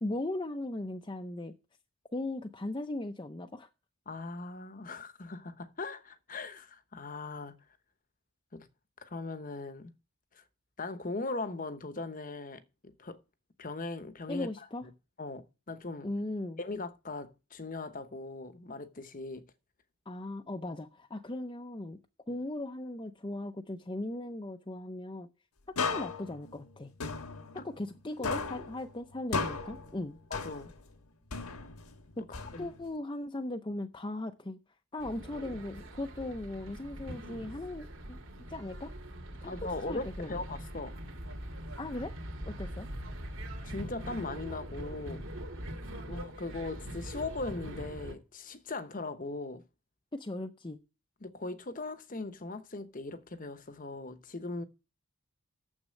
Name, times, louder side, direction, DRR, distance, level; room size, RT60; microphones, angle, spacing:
voice 1, 0.0-1.5 2.1-3.7 14.3-14.9 16.0-16.6 20.1-22.0 22.3-25.3 25.7-26.9 27.6-30.2 32.2-34.6 34.9-38.2 38.5-38.9 39.4-39.5 39.8-40.4 41.8-42.1 42.5-42.9 50.1-50.8, left 1 dB, 20° left, 0.6 m, -38 dB
voice 2, 4.1-7.5 8.5-8.7 9.0-9.9 10.3-10.4 10.8-13.2 13.6-14.9 15.2-16.1 16.6-19.5 22.3-22.4 27.6-27.7 30.3-30.7 32.5-32.7 39.4-40.9 43.6-45.2 46.1-49.6 51.2-54.6, left 3 dB, 35° left, 0.9 m, -39 dB
sound 1, 25.8-28.0 28.2-30.9 31.3-33.0, left 4 dB, 75° left, 1.4 m, -36 dB
sound 2, 35.0-48.1, right 1 dB, 60° right, 2.3 m, -42 dB
9.7 x 7.4 x 6.4 m
head